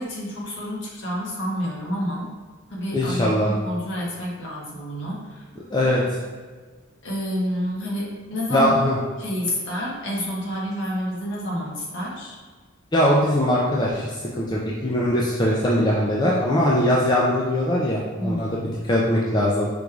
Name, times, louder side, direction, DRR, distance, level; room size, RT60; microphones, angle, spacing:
voice 1, 0.0-2.3 2.7-5.4 6.0-6.1 7.0-8.8 9.2-12.4 18.2-18.8, equal, 60° left, -4 dB, 1.1 m, -29 dB
voice 2, 2.9-3.5 5.7-6.0 8.5-9.0 12.9-19.7, left 1 dB, 20° left, -5 dB, 0.4 m, -21 dB
5.2 x 3.1 x 2.3 m, 1.4 s
head